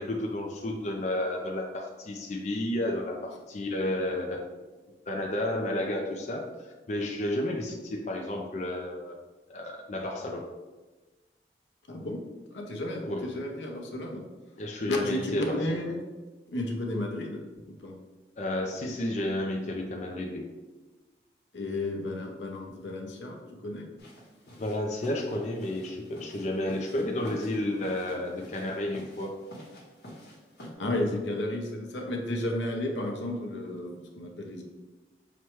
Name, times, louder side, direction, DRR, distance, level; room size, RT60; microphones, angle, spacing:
voice 1, 0.0-4.5 5.1-9.1 9.5-10.4 13.0-13.4 14.6-15.6 18.4-20.5 24.6-29.4, left 1 dB, 40° left, 1 dB, 0.4 m, -31 dB
voice 2, 11.9-12.2 12.5-14.2 14.9-16.0 16.5-18.0 21.5-23.9 30.6-34.6, left 1 dB, 90° left, 1 dB, 0.7 m, -33 dB
sound 1, 24.0-30.7, equal, 65° left, 0.9 m, -48 dB
6.0 x 2.2 x 3.0 m, 1.2 s
head